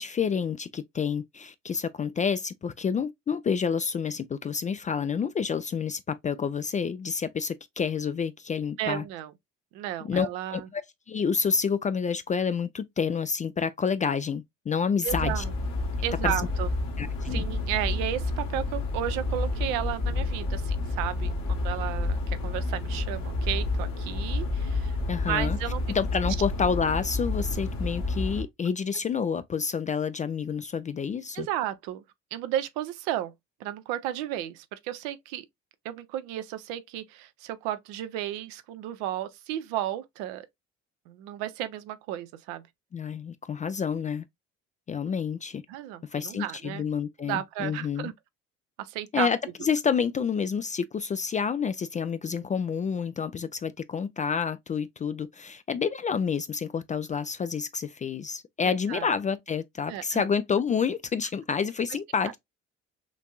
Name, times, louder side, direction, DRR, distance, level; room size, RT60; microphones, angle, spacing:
voice 1, 0.0-9.0 10.1-10.8 11.1-15.4 16.2-16.3 17.0-17.4 25.1-25.6 25.9-31.5 42.9-44.2 44.9-45.6 46.1-48.1 49.1-62.4, left 6 dB, 20° left, 0.4 m, -29 dB
voice 2, 8.8-9.3 9.7-10.7 15.0-15.5 16.0-16.7 17.3-25.8 26.3-26.4 31.3-32.0 32.3-33.3 33.6-35.4 35.8-40.5 41.1-42.6 45.7-46.9 47.2-48.1 48.8-49.3 52.3-52.4 58.6-59.1 59.9-60.3, right 12 dB, 60° right, 0.7 m, -33 dB
sound 1, 15.1-28.4, left 2 dB, 65° left, 1.3 m, -29 dB
6.0 x 2.6 x 2.3 m
figure-of-eight pair, 50°, 38 cm